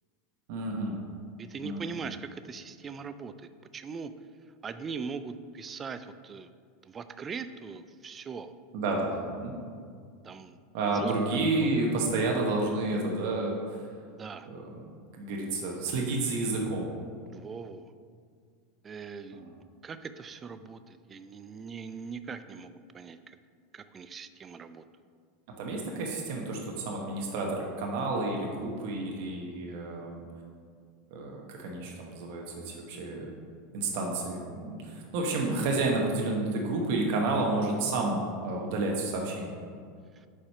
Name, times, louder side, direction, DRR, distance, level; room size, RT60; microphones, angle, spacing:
voice 1, 0.5-1.0 1.6-1.8 8.7-9.5 10.7-13.8 14.4-14.9 15.2-16.9 19.3-19.5 25.6-30.2 31.1-33.3 33.7-39.6, right 2 dB, 65° right, -1 dB, 1.0 m, -30 dB
voice 2, 1.4-4.1 4.6-6.5 6.8-8.5 10.2-10.6 10.9-11.1 11.6-11.7 14.1-14.5 17.3-17.9 18.8-19.5 19.8-23.4 23.7-24.8 40.2-40.3, right 5 dB, 25° right, 11 dB, 0.3 m, -41 dB
4.9 x 4.3 x 5.4 m, 2.1 s
supercardioid pair, 115°, 0 cm